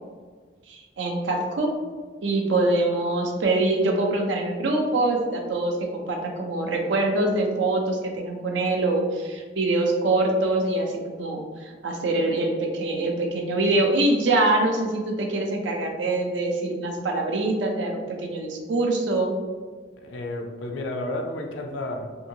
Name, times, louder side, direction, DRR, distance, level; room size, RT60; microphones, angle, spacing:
voice 1, 0.7-1.7 2.2-19.3, right 2 dB, 80° right, 1 dB, 0.5 m, -24 dB
voice 2, 20.0-22.3, left 1 dB, 85° left, 4 dB, 0.4 m, -32 dB
2.7 x 2.7 x 2.7 m, 1.5 s
head